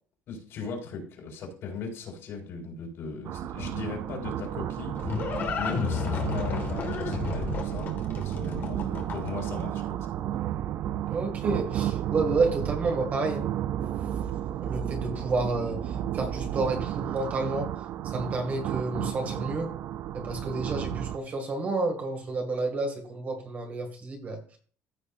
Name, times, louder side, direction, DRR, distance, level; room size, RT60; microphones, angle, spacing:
voice 1, 0.3-10.1, left 4 dB, 55° left, 0 dB, 4.1 m, -38 dB
sound 1, 3.2-21.2, right 11 dB, 50° right, 0.5 m, -32 dB
Livestock farm animals working animals, 4.4-9.5, left 5 dB, 40° left, 1.7 m, -32 dB
voice 2, 8.5-8.9 11.1-13.5 14.6-17.7 18.0-19.7 20.1-24.6, right 3 dB, 30° right, 3 dB, 2.0 m, -30 dB
15.0 x 6.4 x 2.5 m, 0.42 s
cardioid pair, 170°, 5 cm